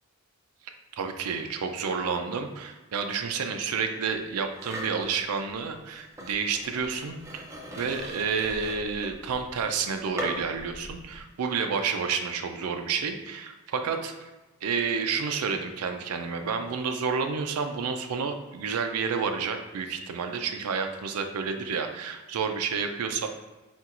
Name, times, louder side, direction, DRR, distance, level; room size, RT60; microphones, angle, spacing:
voice 1, 0.6-7.4 7.8-14.3 14.6-23.3, right 5 dB, 85° right, 6 dB, 0.4 m, -30 dB
sound 1, 4.6-5.0 6.0-11.2, equal, 15° right, 0.5 m, -39 dB
4.3 x 3.9 x 2.4 m, 1.1 s
head